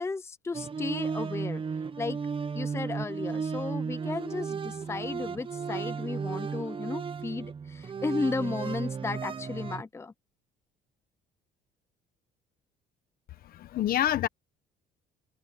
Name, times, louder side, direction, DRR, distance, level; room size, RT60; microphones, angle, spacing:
voice 1, 0.0-1.6 2.0-2.2 2.5-10.1, left 4 dB, 15° left, 0.7 m, -34 dB
sound 1, 0.5-9.8, right 5 dB, 30° right, 1.1 m, -34 dB
voice 2, 13.4-14.3, left 12 dB, 60° left, 1.2 m, -27 dB
cardioid pair, 110°, 17 cm